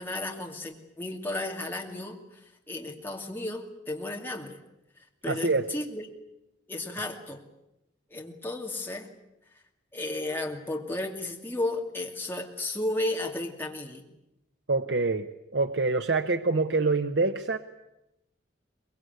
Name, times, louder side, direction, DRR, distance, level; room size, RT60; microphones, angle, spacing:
voice 1, 0.0-2.2 2.7-4.6 5.2-6.1 6.7-7.4 8.1-9.1 9.9-14.0, left 2 dB, 10° left, 1 dB, 2.5 m, -33 dB
voice 2, 5.3-5.6 14.7-15.3 15.5-17.6, right 3 dB, 65° right, 8 dB, 0.9 m, -25 dB
23.5 x 21.0 x 9.4 m, 0.90 s
head